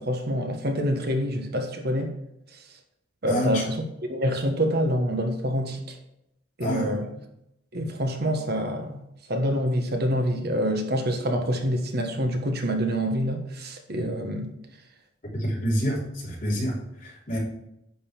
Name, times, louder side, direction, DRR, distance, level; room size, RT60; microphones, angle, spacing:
voice 1, 0.0-2.1 3.2-3.8 4.1-6.0 6.6-7.1 7.7-9.0 9.3-14.5, equal, 55° right, 4 dB, 1.3 m, -26 dB
voice 2, 3.3-3.6 6.6-7.0 15.3-17.4, equal, 40° left, -5 dB, 3.5 m, -27 dB
10.5 x 4.0 x 7.3 m, 0.82 s
head